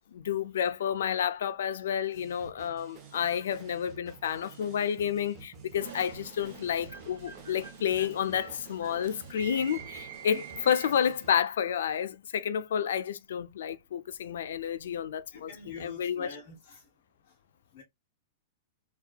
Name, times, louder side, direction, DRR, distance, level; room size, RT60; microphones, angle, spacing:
voice 1, 0.1-16.3, left 8 dB, 90° left, 0.3 m, -30 dB
sound 1, 2.1-11.3, right 6 dB, 20° right, 0.6 m, -51 dB
sound 2, 5.8-11.2, right 8 dB, 75° right, 1.0 m, -46 dB
voice 2, 15.3-16.9 17.7-17.8, left 3 dB, 35° left, 0.5 m, -47 dB
2.7 x 2.2 x 2.2 m
supercardioid pair, 180°, 0 cm